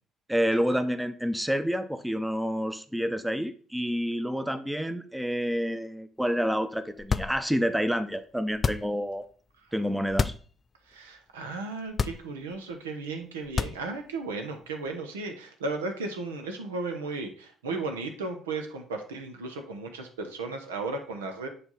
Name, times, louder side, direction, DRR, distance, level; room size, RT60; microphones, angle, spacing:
voice 1, 0.3-9.2 9.7-10.3, equal, 5° right, 11 dB, 0.7 m, -28 dB
sound 1, 7.0-7.7 8.5-9.1 10.1-10.5 10.9-11.0 11.9-12.6 13.4-14.1, left 5 dB, 40° left, 0.3 m, -29 dB
voice 2, 10.9-21.5, right 3 dB, 85° right, 5 dB, 0.9 m, -35 dB
7.0 x 3.4 x 5.4 m, 0.43 s
hypercardioid pair, 55°, 0 cm